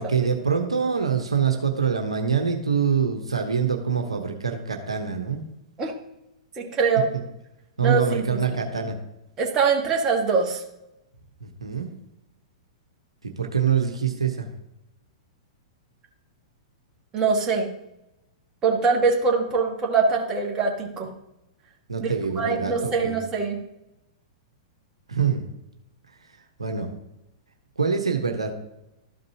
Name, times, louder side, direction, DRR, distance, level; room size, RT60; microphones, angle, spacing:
voice 1, 0.0-5.4 7.1-7.2 7.8-8.9 11.4-11.9 13.2-14.5 21.9-23.2 25.1-25.5 26.6-26.9 27.8-28.5, right 6 dB, 80° right, 3 dB, 1.0 m, -25 dB
voice 2, 6.6-7.1 7.8-8.3 9.4-10.6 17.1-17.7 18.6-21.1 22.0-22.1 22.4-23.6, right 4 dB, 25° right, 0 dB, 1.7 m, -23 dB
13.0 x 5.2 x 2.9 m, 0.88 s
figure-of-eight pair, 105°, 3 cm